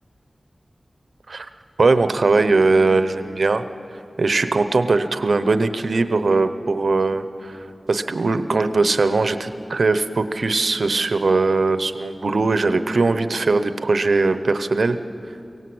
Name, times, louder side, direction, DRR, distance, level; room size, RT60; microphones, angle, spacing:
voice 1, 1.8-3.6 4.2-7.6 7.9-15.0, right 3 dB, 75° right, 11 dB, 0.8 m, -20 dB
23.5 x 18.0 x 7.9 m, 2.7 s
wide cardioid pair, 85°, 0 cm